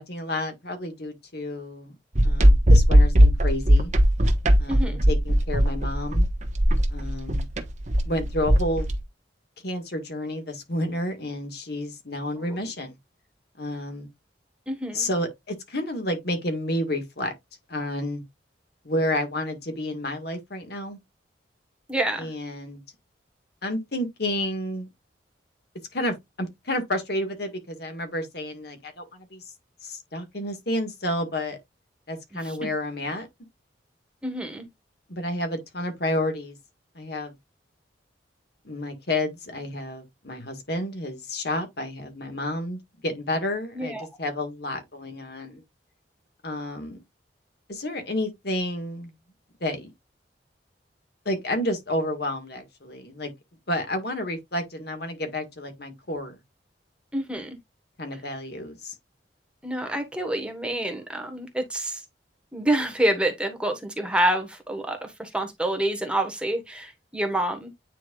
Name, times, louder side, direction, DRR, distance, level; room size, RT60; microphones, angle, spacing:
voice 1, 0.0-2.0 2.2-3.9 4.6-6.3 6.9-7.5 8.1-8.9 9.6-12.9 13.6-14.1 14.9-17.3 17.7-18.2 18.8-21.0 22.2-22.8 23.6-24.9 25.9-29.4 29.8-31.6 32.1-33.3 35.1-36.6 37.0-37.3 38.7-45.6 46.4-47.0 47.7-49.1 49.6-49.9 51.3-53.3 53.7-56.4 58.0-58.9, left 1 dB, 60° left, 1.8 m, -30 dB
sound 1, 2.1-9.0, equal, 40° right, 1.2 m, -18 dB
voice 2, 4.7-5.0 12.4-12.6 14.7-15.1 21.9-22.3 32.4-32.7 34.2-34.7 43.7-44.1 57.1-57.6 59.6-62.0 62.5-67.7, right 1 dB, 5° right, 1.4 m, -27 dB
9.3 x 4.6 x 2.4 m
head